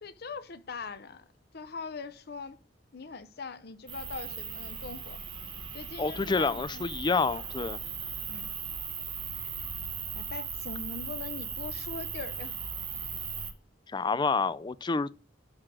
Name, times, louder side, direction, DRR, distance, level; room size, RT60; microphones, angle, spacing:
voice 1, 0.0-1.2 1.5-2.6 2.9-5.2 5.7-6.8 8.3-8.5 10.1-12.6, left 4 dB, 60° left, 0.7 m, -41 dB
sound 1, 3.9-13.5, right 6 dB, 30° right, 1.5 m, -38 dB
voice 2, 6.0-7.8 13.9-15.1, left 4 dB, 25° left, 0.4 m, -28 dB
11.5 x 3.8 x 6.1 m
head